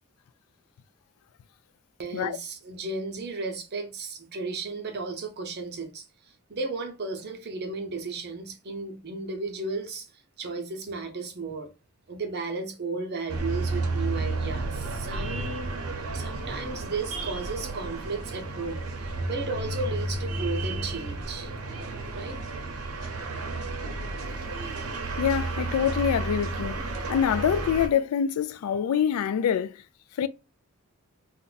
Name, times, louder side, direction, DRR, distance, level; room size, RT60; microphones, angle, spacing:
voice 1, 2.0-6.0 6.5-10.1 10.4-11.7 12.1-15.8 16.1-21.5 22.1-22.4, right 3 dB, 50° right, 0.6 m, -34 dB
sound 1, 13.3-27.9, right 2 dB, 90° right, 0.6 m, -32 dB
voice 2, 25.2-29.8 30.2-30.3, left 8 dB, 90° left, 0.3 m, -25 dB
2.5 x 2.2 x 3.9 m
head